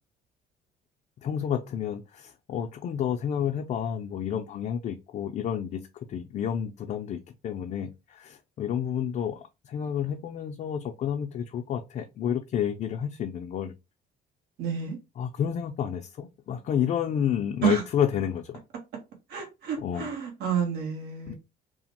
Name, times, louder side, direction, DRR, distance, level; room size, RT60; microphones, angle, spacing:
voice 1, 1.2-5.8 6.1-13.7 15.2-18.6 19.8-20.1 21.3-21.4, left 9 dB, 45° left, 0.4 m, -30 dB
voice 2, 14.6-15.0 17.6-17.8 19.3-21.3, right 7 dB, 70° right, 1.0 m, -29 dB
2.9 x 2.0 x 2.8 m
cardioid pair, 110°, 17 cm